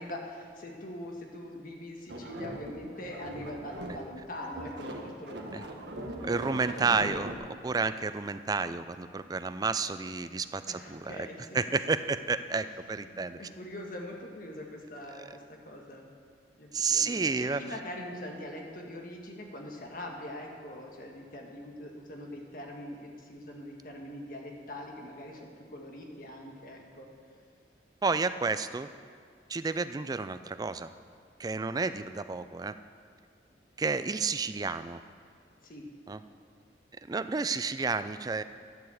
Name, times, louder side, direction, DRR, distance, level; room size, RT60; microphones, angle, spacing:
voice 1, 0.0-6.0 6.3-7.2 10.7-11.4 12.8-16.1 16.6-27.1 33.5-33.6 35.6-35.9, left 1 dB, 50° left, 1 dB, 1.6 m, -43 dB
sound 1, 2.1-4.2 4.4-7.3, right 1 dB, 80° right, 1.3 m, -40 dB
voice 2, 6.2-11.1 11.5-13.4 15.1-15.4 16.7-17.6 28.0-28.9 29.5-30.9 31.4-32.8 33.8-35.0 36.1-36.2 37.1-38.4, right 4 dB, 20° right, 12 dB, 0.3 m, -31 dB
11.5 x 7.0 x 7.7 m, 2.1 s
head